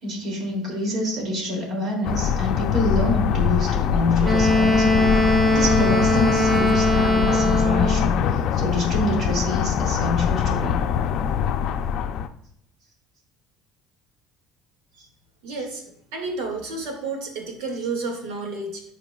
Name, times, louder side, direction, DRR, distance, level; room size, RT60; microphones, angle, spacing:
voice 1, 0.0-10.8, left 2 dB, 45° right, -1 dB, 2.8 m, -27 dB
sound 1, 2.0-12.3, left 8 dB, 55° left, 0.5 m, -23 dB
Wind instrument woodwind instrument, 4.2-8.2, left 1 dB, 20° right, 0.8 m, -20 dB
voice 2, 15.4-15.8 16.1-18.8, right 3 dB, 85° right, 2 dB, 2.1 m, -31 dB
14.5 x 4.9 x 2.4 m, 0.70 s
cardioid pair, 140°, 0 cm